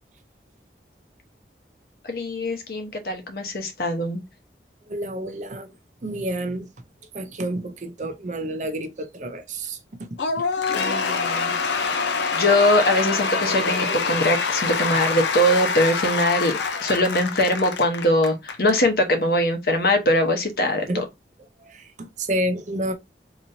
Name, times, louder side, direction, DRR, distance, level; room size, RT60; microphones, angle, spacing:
voice 1, 2.1-4.2 10.8-11.5 12.3-21.0, left 1 dB, 55° left, 0.9 m, -22 dB
voice 2, 4.9-5.7 6.0-6.7 7.1-10.2 20.9-21.0 21.6-22.9, right 1 dB, 45° right, 0.6 m, -29 dB
Cheering / Applause / Crowd, 10.2-18.8, left 5 dB, 85° left, 0.7 m, -25 dB
3.9 x 3.0 x 2.6 m
head